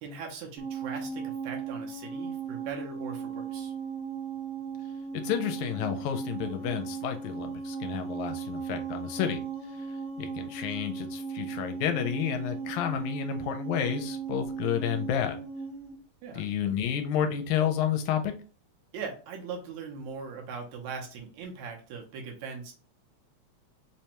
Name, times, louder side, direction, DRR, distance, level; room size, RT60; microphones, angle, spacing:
voice 1, 0.0-3.7 16.2-16.5 18.9-22.7, right 5 dB, 75° right, 1 dB, 2.1 m, -40 dB
sound 1, 0.6-15.9, right 6 dB, 50° right, 0.8 m, -37 dB
voice 2, 5.1-9.4 9.8-15.4 16.3-18.3, left 9 dB, 85° left, 7 dB, 2.0 m, -30 dB
5.0 x 2.2 x 2.9 m, 0.36 s
omnidirectional pair, 3.3 m